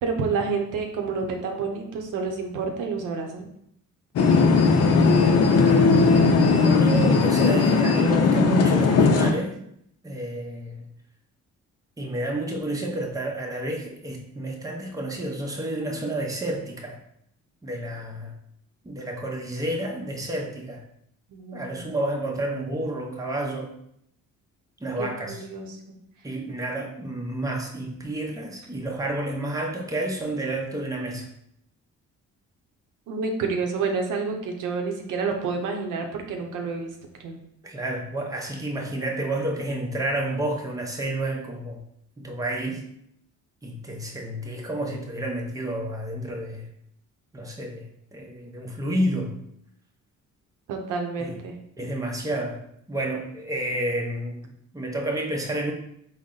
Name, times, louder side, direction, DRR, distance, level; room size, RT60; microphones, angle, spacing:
voice 1, 0.0-3.5 21.3-21.7 25.0-26.0 33.1-36.9 37.2-37.4 50.7-51.5, right 4 dB, 85° right, 3 dB, 0.7 m, -29 dB
sound 1, 4.2-9.3, left 4 dB, 55° left, 0.5 m, -18 dB
voice 2, 5.3-6.1 6.6-9.6 10.0-10.8 12.0-17.0 17.6-18.3 18.8-20.8 21.5-23.7 24.8-25.4 26.2-31.3 37.6-41.8 42.2-42.9 43.6-46.7 47.3-49.4 51.2-51.4 51.8-52.6 52.9-54.5 54.7-55.7, right 1 dB, 10° right, 1 dB, 0.7 m, -30 dB
3.9 x 2.1 x 3.7 m, 0.72 s
cardioid pair, 90°, 30 cm